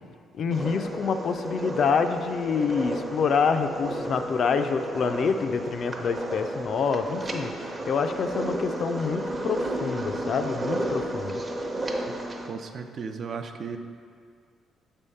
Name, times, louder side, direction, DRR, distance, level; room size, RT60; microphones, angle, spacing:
voice 1, 0.3-11.4, left 5 dB, 60° left, 7 dB, 0.4 m, -27 dB
sound 1, 0.5-12.5, right 1 dB, 30° right, 0.8 m, -33 dB
voice 2, 12.5-13.8, right 5 dB, 55° right, 6 dB, 0.5 m, -35 dB
6.8 x 3.6 x 5.5 m, 2.1 s
cardioid pair, 90°, 0 cm